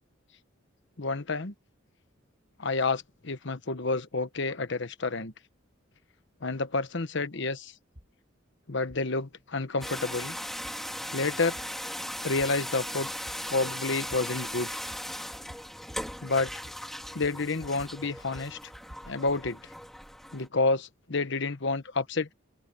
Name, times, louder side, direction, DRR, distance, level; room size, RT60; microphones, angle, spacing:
voice 1, 1.0-1.5 2.6-5.3 6.4-7.7 8.7-10.4 11.1-11.6 12.2-13.1 13.5-14.7 16.2-16.5 17.1-18.6 19.1-19.6 20.3-22.3, left 3 dB, 65° left, 1.2 m, -29 dB
sound 1, 8.0-8.1 8.9-9.0 9.8-9.9 10.6-10.7 11.6-11.7 12.4-12.5 13.3-13.4 14.1-14.2 14.9-15.0 15.3-15.6 15.9-16.2 16.4-16.8 17.0-17.9 18.2-19.6, equal, 50° right, 5.8 m, -49 dB
sound 2, 9.8-20.5, equal, ahead, 3.2 m, -38 dB
open air
head